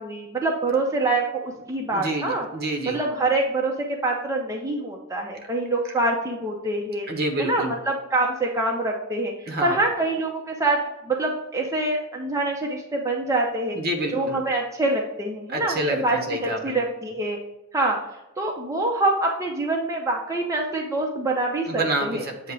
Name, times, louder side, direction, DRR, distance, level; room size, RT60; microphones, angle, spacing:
voice 1, 0.0-2.5 2.9-7.1 7.4-9.3 9.6-10.8 11.0-13.8 14.1-17.4 17.7-18.0 18.4-22.2, right 2 dB, 15° right, -1 dB, 0.7 m, -25 dB
voice 2, 1.9-3.0 7.1-7.7 9.5-9.8 13.7-14.4 15.5-16.8 21.7-22.5, right 1 dB, 50° right, 4 dB, 1.1 m, -28 dB
7.9 x 3.0 x 4.7 m, 0.93 s
head